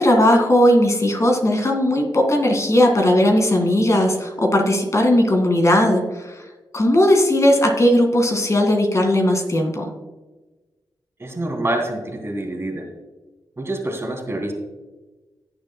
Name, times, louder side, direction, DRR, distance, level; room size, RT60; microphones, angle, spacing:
voice 1, 0.0-6.4 6.7-9.9, left 1 dB, 35° left, 3 dB, 2.1 m, -17 dB
voice 2, 11.2-12.9 13.6-14.5, right 1 dB, 30° right, 2 dB, 2.6 m, -26 dB
17.0 x 7.0 x 2.3 m, 1.2 s
cardioid pair, 70°, 9 cm